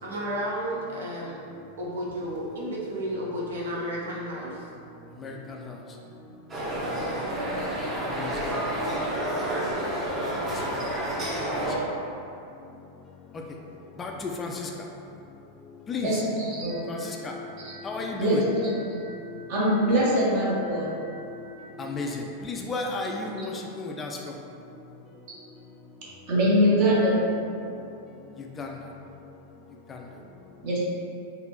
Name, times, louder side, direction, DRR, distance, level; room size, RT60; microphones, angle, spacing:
voice 1, 0.0-1.4 1.8-4.6 6.7-6.8, equal, 65° right, -4 dB, 0.6 m, -32 dB
sound 1, 6.5-11.8, right 1 dB, 25° right, 0.8 m, -29 dB
voice 2, 14.0-14.7 15.9-16.1 16.9-17.3 17.8-18.4 21.8-22.1 22.4-23.5 23.8-24.1 28.6-28.7, left 3 dB, 20° left, 1 dB, 0.3 m, -32 dB
voice 3, 16.0-16.8 17.6-17.7 18.2-19.0 19.5-20.9 26.3-27.2 30.6-30.8, equal, 45° right, -7 dB, 1.1 m, -23 dB
sound 2, 16.7-21.7, left 3 dB, 85° right, 1.2 m, -44 dB
4.0 x 2.6 x 3.1 m, 2.8 s
figure-of-eight pair, 90°, 0 cm